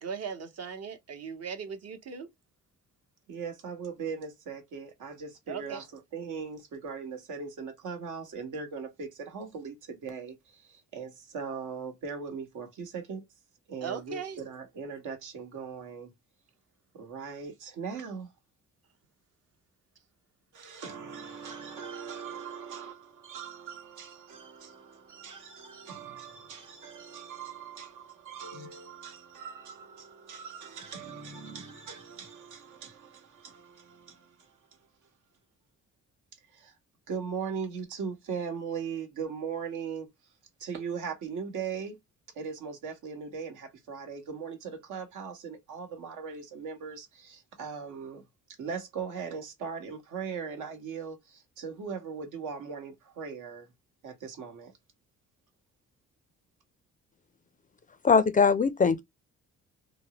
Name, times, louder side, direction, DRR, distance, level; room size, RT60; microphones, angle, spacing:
voice 1, 0.0-2.3 5.5-5.8 13.8-14.4, right 6 dB, 55° right, 0.9 m, -38 dB
voice 2, 3.3-13.2 13.7-16.1 16.9-18.3 20.5-34.6 36.5-36.7 37.1-40.1 40.6-42.0 42.3-48.2 48.6-53.7 54.0-54.7, right 6 dB, 80° right, 1.1 m, -39 dB
voice 3, 58.0-59.0, left 5 dB, 30° left, 0.4 m, -21 dB
3.3 x 2.0 x 2.7 m
cardioid pair, 90°, 30 cm